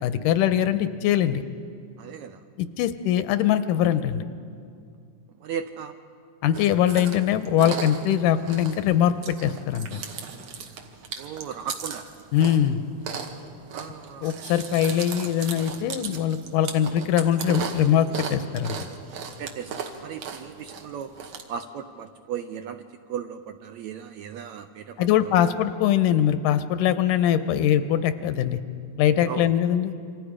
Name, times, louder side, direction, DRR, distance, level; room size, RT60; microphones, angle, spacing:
voice 1, 0.0-1.4 2.6-4.2 6.4-10.0 12.3-12.8 14.2-18.9 25.0-28.6 29.0-29.9, left 10 dB, 85° left, 11 dB, 2.3 m, -22 dB
voice 2, 2.0-2.4 5.4-5.9 11.2-12.1 13.7-14.3 19.4-21.1 21.5-22.8 23.1-25.3 29.3-29.5, right 8 dB, 75° right, 8 dB, 1.7 m, -36 dB
Chewing mastication, 6.5-21.4, right 6 dB, 60° right, 2.4 m, -37 dB
27.5 x 25.5 x 5.0 m, 2.3 s
omnidirectional pair, 3.8 m